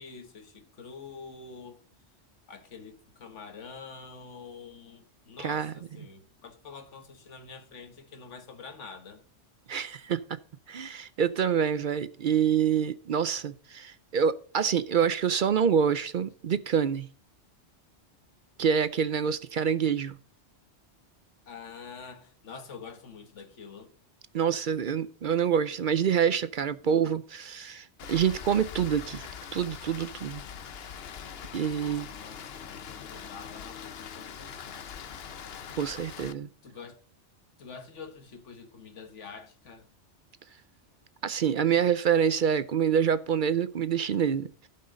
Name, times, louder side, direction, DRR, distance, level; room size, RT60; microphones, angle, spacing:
voice 1, 0.0-1.8 2.5-9.2 19.2-19.3 21.5-23.9 26.8-27.0 31.8-34.9 36.6-37.0 37.6-39.9, left 5 dB, 90° left, 1.6 m, -46 dB
voice 2, 5.4-5.7 9.7-10.4 10.7-17.1 18.6-20.2 24.3-29.2 29.5-30.4 31.5-32.1 35.8-36.5 41.2-44.7, right 8 dB, 55° right, 0.6 m, -26 dB
Rain, 28.0-36.3, left 7 dB, 60° left, 1.0 m, -42 dB
16.0 x 5.6 x 3.8 m
omnidirectional pair, 1.2 m